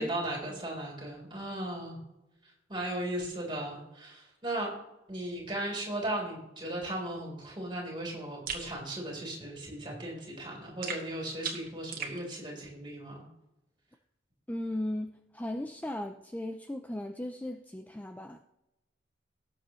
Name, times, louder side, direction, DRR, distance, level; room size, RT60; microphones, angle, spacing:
voice 1, 0.0-2.0 2.7-4.7 5.1-13.2, right 1 dB, 25° right, -1 dB, 3.9 m, -36 dB
sound 1, 8.5-8.7 10.8-12.2, right 5 dB, 50° right, 1.7 m, -37 dB
voice 2, 14.5-18.4, left 1 dB, 10° left, 6 dB, 0.4 m, -37 dB
18.0 x 7.4 x 3.1 m, 0.92 s
head